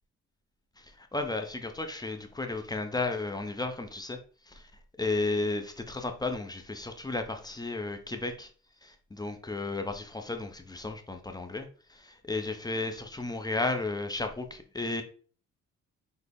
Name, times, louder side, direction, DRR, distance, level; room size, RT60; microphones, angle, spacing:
voice 1, 0.8-4.2 4.5-4.7 5.0-8.5 8.8-15.0, left 3 dB, 15° left, 5 dB, 0.6 m, -33 dB
6.0 x 2.1 x 3.4 m, 0.42 s
cardioid pair, 90°, 30 cm